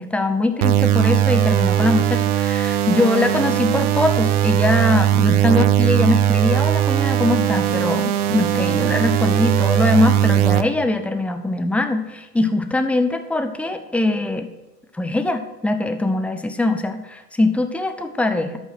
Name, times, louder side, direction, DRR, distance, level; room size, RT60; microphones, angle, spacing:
voice 1, 0.0-14.5 14.9-18.6, left 2 dB, 5° left, 7 dB, 0.6 m, -22 dB
sound 1, 0.6-10.6, right 11 dB, 60° right, 0.9 m, -19 dB
13.0 x 5.6 x 5.8 m, 1.1 s
hypercardioid pair, 110°, 49 cm